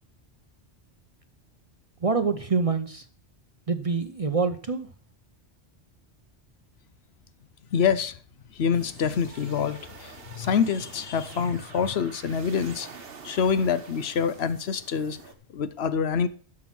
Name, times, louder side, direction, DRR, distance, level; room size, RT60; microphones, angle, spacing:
voice 1, 2.0-3.1 3.7-4.9, right 4 dB, 35° right, 0.7 m, -26 dB
voice 2, 7.7-8.2 8.5-12.9 13.2-15.2 15.5-16.3, left 6 dB, 70° left, 0.9 m, -26 dB
sound 1, 8.7-15.3, right 5 dB, 60° right, 1.3 m, -47 dB
11.5 x 6.2 x 5.9 m
omnidirectional pair, 1.1 m